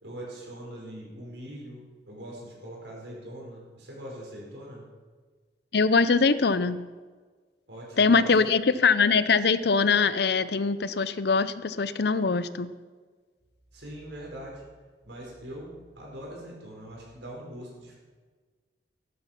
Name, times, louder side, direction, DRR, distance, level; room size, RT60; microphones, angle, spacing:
voice 1, 0.0-4.8 7.7-8.5 13.7-14.6 15.0-17.9, right 1 dB, 85° right, -2 dB, 5.0 m, -42 dB
voice 2, 5.7-6.9 8.0-12.7, left 4 dB, 65° left, 15 dB, 0.6 m, -22 dB
13.5 x 12.0 x 5.9 m, 1.5 s
head